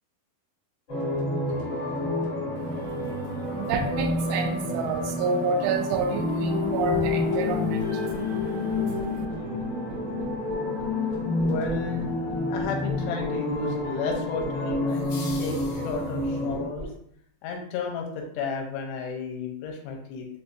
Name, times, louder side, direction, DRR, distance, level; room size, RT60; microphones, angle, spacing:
sound 1, 0.9-16.6, left 2 dB, 50° left, 1.4 m, -29 dB
voice 1, 2.6-9.3, right 4 dB, 85° right, 6 dB, 2.7 m, -30 dB
sound 2, 7.5-16.9, right 1 dB, 65° right, 1.3 m, -41 dB
voice 2, 11.5-12.1 12.5-16.9 17.4-20.3, left 4 dB, 80° left, 1 dB, 2.7 m, -33 dB
sound 3, 14.9-16.5, left 4 dB, 65° left, 2.5 m, -44 dB
6.7 x 2.3 x 2.6 m, 0.67 s
omnidirectional pair, 5.0 m